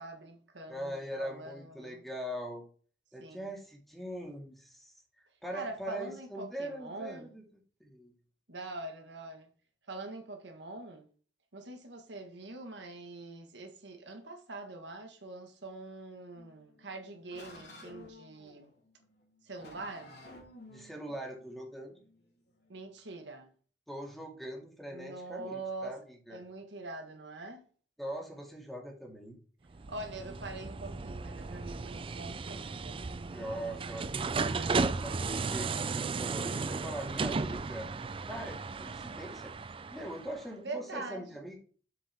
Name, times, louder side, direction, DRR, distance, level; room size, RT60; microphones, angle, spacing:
voice 1, 0.0-2.0 3.2-3.5 5.5-7.4 8.5-9.5 9.9-11.1 11.5-18.7 19.4-20.1 22.7-23.5 24.9-26.0 26.3-27.6 29.9-33.0 36.4-36.9 40.6-41.3, right 2 dB, 70° right, 1.6 m, -44 dB
voice 2, 0.7-2.6 3.1-7.4 7.8-8.1 20.7-22.0 23.9-26.4 28.0-29.4 33.3-35.2 35.5-37.9 38.2-39.5 39.9-41.7, equal, ahead, 2.2 m, -42 dB
sound 1, 16.4-22.9, left 2 dB, 65° left, 3.1 m, -54 dB
sound 2, 29.7-40.4, right 4 dB, 30° right, 0.4 m, -35 dB
7.7 x 6.6 x 3.5 m
head